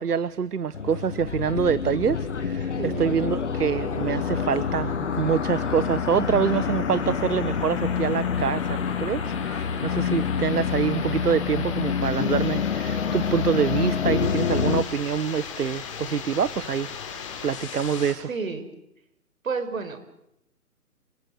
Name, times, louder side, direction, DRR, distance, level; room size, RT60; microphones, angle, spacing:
voice 1, 0.0-18.3, right 7 dB, 80° right, 18 dB, 1.1 m, -26 dB
sound 1, 0.7-14.8, left 6 dB, 50° left, 1.4 m, -27 dB
sound 2, 1.2-18.1, left 6 dB, 20° left, 3.7 m, -36 dB
voice 2, 2.8-3.2 18.3-18.7 19.4-20.0, right 4 dB, 60° right, 10 dB, 5.4 m, -30 dB
29.5 x 27.5 x 6.7 m, 0.84 s
hypercardioid pair, 170°, 46 cm